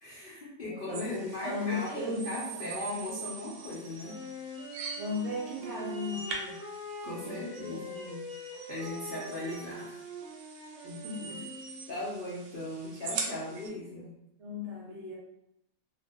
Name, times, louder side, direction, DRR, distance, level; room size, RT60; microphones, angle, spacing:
voice 1, 0.0-4.2 7.0-8.0 8.7-9.9 11.9-14.2, left 1 dB, 50° left, -7 dB, 0.6 m, -38 dB
voice 2, 0.6-2.7 5.0-6.6 7.2-8.2 10.8-11.5 14.4-15.2, left 2 dB, 60° right, -4 dB, 0.8 m, -37 dB
sound 1, 0.9-13.7, right 4 dB, 85° right, 1.1 m, -43 dB
Wind instrument woodwind instrument, 4.0-12.0, equal, 30° right, 1.2 m, -44 dB
2.7 x 2.0 x 3.3 m, 0.82 s
omnidirectional pair, 1.5 m